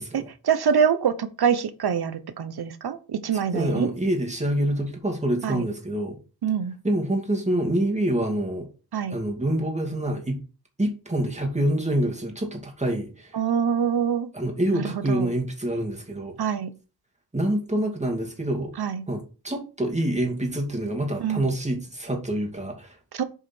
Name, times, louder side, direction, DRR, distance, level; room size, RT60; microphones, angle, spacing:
voice 1, 0.0-3.9 5.4-5.6 6.4-6.8 8.9-9.1 13.3-14.3 14.7-15.3 16.4-16.7 18.8-19.0 21.2-21.5 23.1-23.2, right 7 dB, 75° right, 1.1 m, -25 dB
voice 2, 3.5-6.2 6.8-8.7 9.1-10.4 10.8-13.4 14.3-16.4 17.3-18.7 19.1-23.0, right 1 dB, 20° right, 2.5 m, -26 dB
7.8 x 4.9 x 4.5 m
wide cardioid pair, 75°, 38 cm